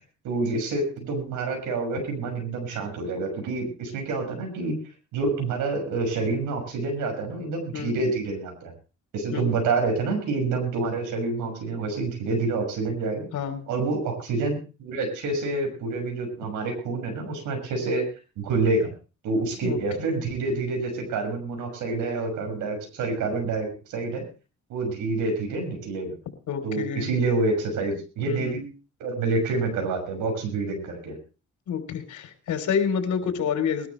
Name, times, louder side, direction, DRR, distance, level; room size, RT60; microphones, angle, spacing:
voice 1, 0.2-4.7 5.1-8.7 9.1-13.3 13.7-18.1 18.4-18.9 19.2-24.2 24.7-26.1 26.6-28.6 29.0-31.2, right 3 dB, 90° right, 3 dB, 6.4 m, -27 dB
voice 2, 13.3-13.7 19.6-20.1 26.5-27.1 28.3-28.7 31.7-33.9, left 7 dB, 75° left, 7 dB, 3.5 m, -28 dB
22.0 x 12.5 x 3.2 m, 0.33 s
cardioid pair, 90°, 30 cm